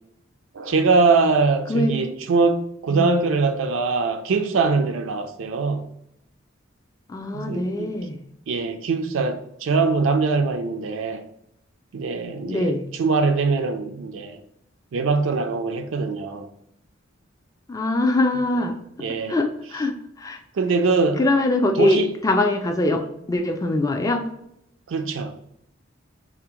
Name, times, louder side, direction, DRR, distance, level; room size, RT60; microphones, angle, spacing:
voice 1, 0.5-5.9 7.3-7.9 8.5-11.2 11.9-14.4 14.9-16.5 19.0-19.4 20.5-21.2 21.8-22.1 24.9-25.4, right 4 dB, 70° right, 0.4 m, -22 dB
voice 2, 7.1-8.2 12.4-12.8 17.7-18.8 19.3-20.4 21.2-23.0 23.3-24.3, left 2 dB, 15° left, 0.3 m, -22 dB
3.4 x 2.0 x 2.9 m
head